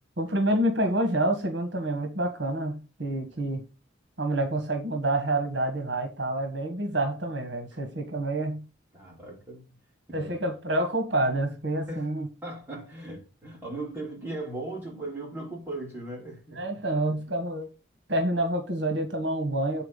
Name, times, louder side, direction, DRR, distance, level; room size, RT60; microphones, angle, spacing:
voice 1, 0.2-3.7 4.2-8.7 10.1-12.3 16.6-17.7 18.1-19.8, right 1 dB, 65° right, 1.7 m, -28 dB
voice 2, 8.9-9.6 10.1-10.3 11.9-12.1 12.4-16.6 16.9-17.5, right 2 dB, 10° right, 4.7 m, -38 dB
8.4 x 4.5 x 7.2 m
head